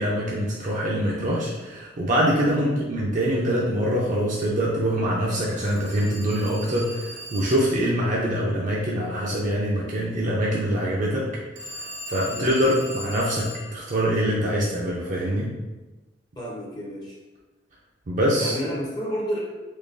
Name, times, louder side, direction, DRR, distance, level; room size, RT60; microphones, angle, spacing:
voice 1, 0.0-11.3 11.5-15.5 18.1-18.6, equal, 45° right, -4 dB, 0.5 m, -24 dB
Telephone, 5.6-7.9 11.6-13.8, equal, 75° right, 0.8 m, -38 dB
voice 2, 16.4-17.2 18.3-19.4, equal, 20° left, -3 dB, 0.6 m, -31 dB
3.7 x 3.1 x 2.6 m, 1.2 s
head